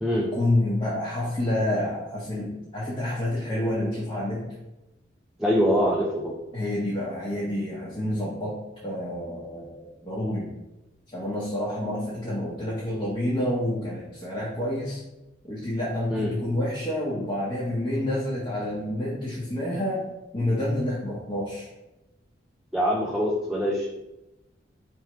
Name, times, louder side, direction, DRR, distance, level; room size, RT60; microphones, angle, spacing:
voice 1, 0.3-4.5 6.5-8.5 8.8-10.5 11.1-15.0 15.4-21.7, left 1 dB, 25° left, -7 dB, 0.9 m, -28 dB
voice 2, 5.4-6.3 16.1-16.3 22.7-23.9, equal, ahead, -3 dB, 0.4 m, -24 dB
3.5 x 3.0 x 4.5 m, 0.98 s
head